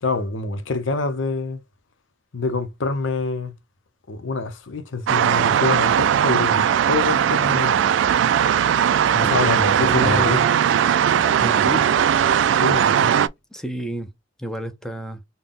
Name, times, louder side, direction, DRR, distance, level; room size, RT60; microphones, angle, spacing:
voice 1, 0.0-1.6 2.3-3.5 4.1-7.8 9.2-10.4 12.6-13.1, left 3 dB, 90° left, 0.7 m, -26 dB
sound 1, 5.1-13.3, right 9 dB, 75° right, 0.3 m, -18 dB
voice 2, 9.1-10.5 11.4-11.9 13.5-14.1 14.4-15.2, equal, 5° left, 0.5 m, -29 dB
3.9 x 2.2 x 3.5 m
head